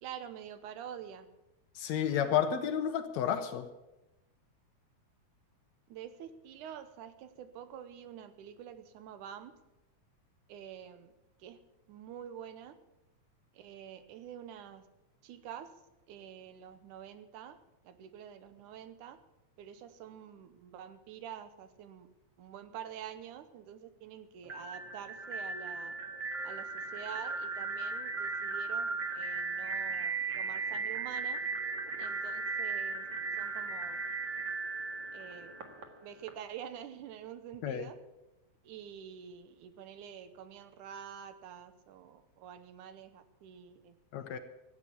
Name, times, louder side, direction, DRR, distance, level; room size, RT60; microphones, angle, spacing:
voice 1, 0.0-1.3 5.9-9.5 10.5-11.1 11.4-11.6 11.9-12.8 13.5-14.8 15.2-15.8 16.1-17.6 17.8-19.2 19.6-22.1 22.4-26.0 26.4-31.4 32.0-33.1 33.4-34.0 35.1-35.6 36.0-38.0 38.6-44.4, right 9 dB, 90° right, 11 dB, 2.5 m, -47 dB
voice 2, 1.8-3.7 37.6-37.9 44.1-44.4, left 9 dB, 70° left, 8 dB, 2.1 m, -31 dB
sound 1, 24.4-36.3, right 4 dB, 45° right, 2.1 m, -37 dB
15.0 x 8.6 x 8.4 m, 0.97 s
omnidirectional pair, 3.5 m